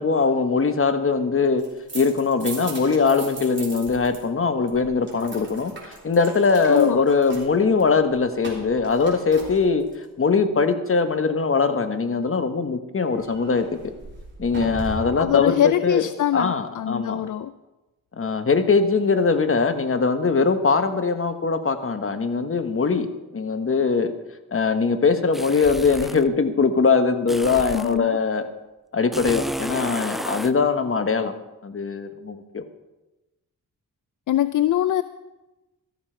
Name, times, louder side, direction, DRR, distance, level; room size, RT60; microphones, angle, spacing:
voice 1, 0.0-1.6 1.9-5.7 6.0-9.8 10.2-13.7 14.4-16.0 16.3-17.2 18.2-23.1 23.3-24.1 24.5-28.5 28.9-31.3 31.6-32.6, left 4 dB, 40° left, 9 dB, 1.1 m, -21 dB
sound 1, 1.6-4.2 4.5-10.0 13.1-15.3, right 2 dB, 35° right, 3.5 m, -39 dB
voice 2, 6.7-7.0 15.2-17.5 27.7-28.1 34.3-35.0, left 12 dB, 65° left, 14 dB, 0.5 m, -22 dB
sound 2, 25.3-26.3 27.3-28.0 29.1-30.6, equal, ahead, 0.3 m, -31 dB
13.5 x 12.5 x 4.5 m, 1.0 s
cardioid pair, 80°, 34 cm